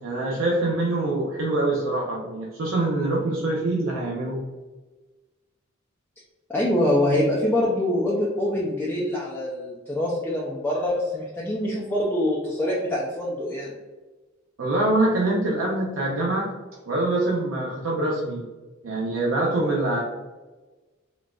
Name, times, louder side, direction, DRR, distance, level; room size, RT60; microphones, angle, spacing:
voice 1, 0.0-4.4 14.6-16.5 16.9-18.4 18.8-20.0, right 2 dB, 80° right, -3 dB, 0.5 m, -24 dB
voice 2, 6.5-13.7, left 1 dB, 10° left, -6 dB, 0.4 m, -24 dB
3.8 x 2.3 x 2.3 m, 1.2 s
head